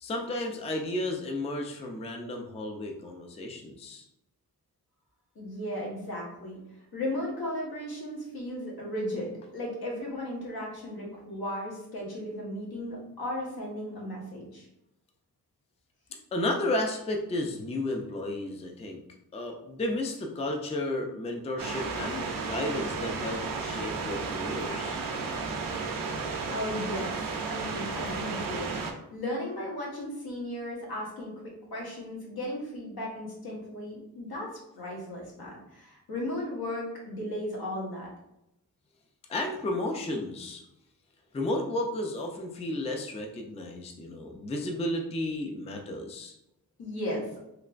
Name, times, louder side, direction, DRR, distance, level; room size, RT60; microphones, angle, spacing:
voice 1, 0.0-4.0 16.3-19.0 19.3-25.0 39.3-40.6 41.3-46.3, left 1 dB, 20° left, 2 dB, 0.3 m, -33 dB
voice 2, 5.3-6.6 6.9-14.7 26.2-27.1 27.5-38.1 46.8-47.3, left 1 dB, 80° left, -4 dB, 1.3 m, -36 dB
sound 1, 21.6-28.9, right 4 dB, 65° right, 0.5 m, -33 dB
3.2 x 2.9 x 2.4 m, 0.84 s
wide cardioid pair, 125°, 37 cm